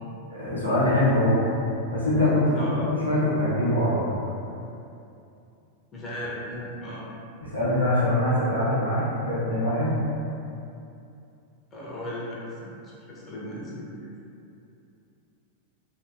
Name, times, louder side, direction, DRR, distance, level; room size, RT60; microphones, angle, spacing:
voice 1, 0.3-1.4 1.9-4.0 7.4-10.0, left 1 dB, 90° left, -11 dB, 0.7 m, -23 dB
voice 2, 2.6-2.9 5.9-7.0 11.7-13.9, left 1 dB, 20° left, -6 dB, 0.5 m, -36 dB
2.6 x 2.1 x 2.4 m, 2.7 s
figure-of-eight pair, 90°, 0 cm